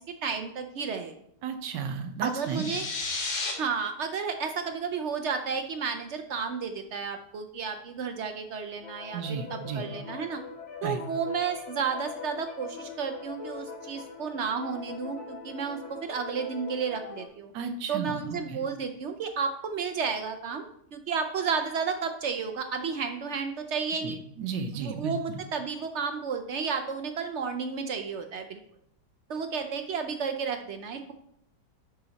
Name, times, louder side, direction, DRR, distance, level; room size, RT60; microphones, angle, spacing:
voice 1, 0.2-1.1 2.2-2.9 3.6-10.4 10.8-17.5 17.9-24.2 24.7-28.6 29.3-31.1, right 5 dB, 70° right, 6 dB, 0.6 m, -32 dB
voice 2, 1.4-2.6 9.1-9.9 10.8-11.0 17.5-18.2 18.5-18.6 24.0-25.4, right 6 dB, 85° right, 7 dB, 1.3 m, -34 dB
sound 1, 2.4-3.5, left 4 dB, 85° left, 2.1 m, -32 dB
sound 2, 8.8-17.3, left 6 dB, 45° left, 1.5 m, -42 dB
10.5 x 4.0 x 4.0 m, 0.71 s
omnidirectional pair, 1.8 m